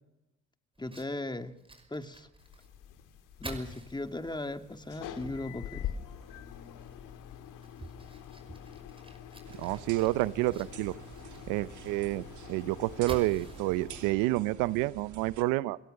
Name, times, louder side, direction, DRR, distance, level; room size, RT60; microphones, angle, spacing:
Fire, 0.7-15.3, right 2 dB, 15° right, 5.5 m, -51 dB
voice 1, 0.8-1.6 1.9-2.3 3.4-5.9, left 2 dB, 15° left, 1.8 m, -37 dB
sound 1, 2.4-14.1, left 9 dB, 75° left, 2.2 m, -45 dB
sound 2, 9.4-15.4, right 10 dB, 70° right, 2.1 m, -49 dB
voice 2, 9.6-10.9 11.5-12.2 12.5-15.8, right 18 dB, 90° right, 0.7 m, -29 dB
29.5 x 17.0 x 6.5 m
supercardioid pair, 65°, 31 cm